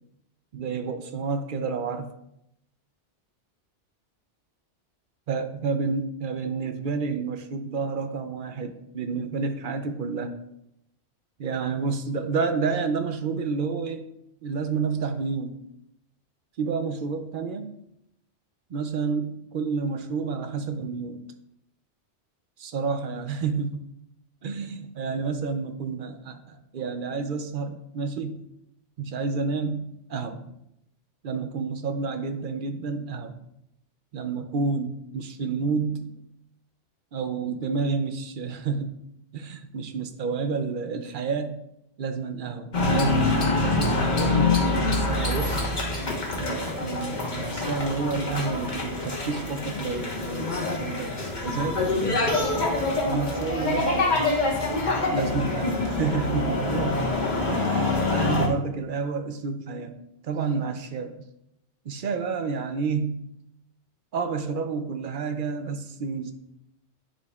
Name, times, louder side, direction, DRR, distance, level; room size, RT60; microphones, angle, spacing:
voice 1, 0.5-2.1 5.3-10.3 11.4-14.1 14.4-15.6 16.6-17.8 18.7-21.2 22.6-23.9 24.4-28.4 29.0-30.5 31.2-33.3 34.1-36.2 37.1-39.0 39.3-41.6 42.0-45.6 46.3-52.5 53.0-54.1 55.1-57.0 57.5-60.0 60.2-61.2 61.9-63.3 64.1-66.3, right 5 dB, 55° right, 8 dB, 0.6 m, -30 dB
sound 1, 42.7-58.5, left 2 dB, 40° left, 1.3 m, -25 dB
9.8 x 5.0 x 2.3 m, 0.80 s
omnidirectional pair, 1.2 m